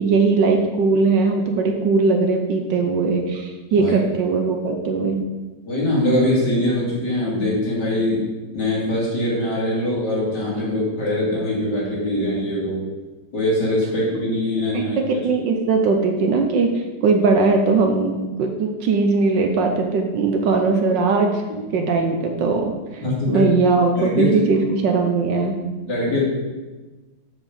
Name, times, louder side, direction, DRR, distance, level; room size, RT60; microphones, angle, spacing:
voice 1, 0.0-5.2 14.7-21.4 21.7-25.6, right 4 dB, 75° right, 3 dB, 1.5 m, -20 dB
voice 2, 5.7-8.3 8.5-12.8 13.3-15.0 21.7-21.8 23.0-23.5 24.0-24.4 25.9-26.2, left 1 dB, 65° left, -5 dB, 3.6 m, -22 dB
7.0 x 5.7 x 7.2 m, 1.2 s
omnidirectional pair, 2.0 m